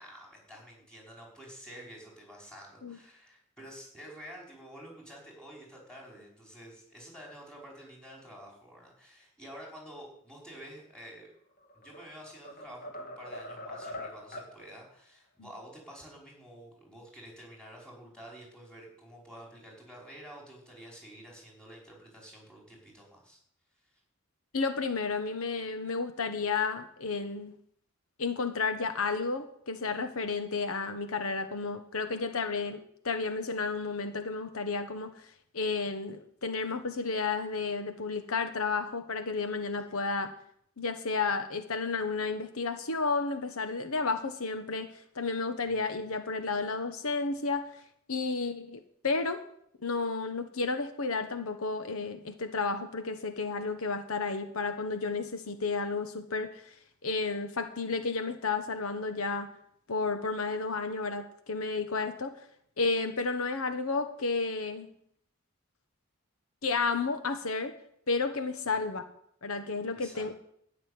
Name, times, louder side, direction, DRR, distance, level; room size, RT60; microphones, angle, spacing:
voice 1, 0.0-11.3 11.7-23.4 23.8-24.0 39.9-40.0 68.7-68.8 69.9-70.3, equal, 5° left, -3 dB, 4.9 m, -49 dB
sound 1, 11.6-12.1 12.4-14.6, left 1 dB, 40° left, 2.2 m, -42 dB
voice 2, 24.5-27.5 28.2-32.8 33.0-35.1 35.5-40.3 40.8-44.9 45.1-47.7 48.1-49.4 49.8-56.7 57.0-59.5 59.9-62.4 62.8-64.9 66.6-67.7 68.1-69.0 69.4-70.3, left 4 dB, 90° left, 8 dB, 1.2 m, -32 dB
12.5 x 6.6 x 9.7 m, 0.68 s
head